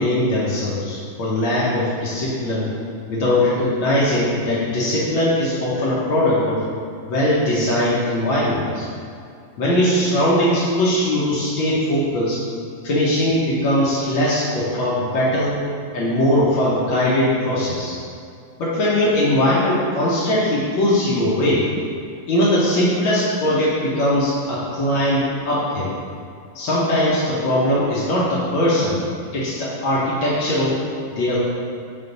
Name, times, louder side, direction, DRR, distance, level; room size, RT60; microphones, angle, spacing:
voice 1, 0.0-2.7 3.1-6.6 7.0-8.8 9.6-12.4 12.8-15.5 15.9-18.0 18.6-21.7 22.3-25.9 26.5-29.0 29.3-30.8 31.1-31.4, left 1 dB, 90° left, -8 dB, 1.7 m, -20 dB
6.7 x 3.7 x 3.9 m, 2.4 s
omnidirectional pair, 2.1 m